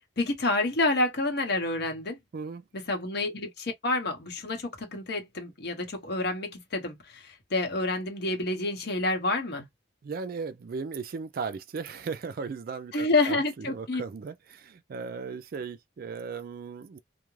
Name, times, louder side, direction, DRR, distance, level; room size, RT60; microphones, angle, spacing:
voice 1, 0.2-2.2 2.9-9.7 12.9-14.0, left 2 dB, 60° left, 0.9 m, -28 dB
voice 2, 2.3-2.7 10.0-17.0, right 5 dB, 50° right, 0.3 m, -37 dB
2.4 x 2.1 x 3.1 m
head